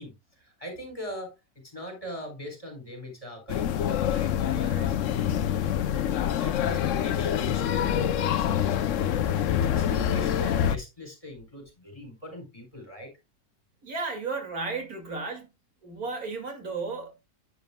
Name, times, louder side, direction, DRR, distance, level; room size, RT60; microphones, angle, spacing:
voice 1, 0.0-1.3 1.7-13.1, equal, 20° left, 4.1 m, -42 dB
sound 1, 3.5-10.8, left 9 dB, 65° left, 1.0 m, -26 dB
voice 2, 13.8-15.5 15.8-17.2, right 4 dB, 75° right, 2.8 m, -34 dB
10.5 x 9.5 x 2.3 m
omnidirectional pair, 1.6 m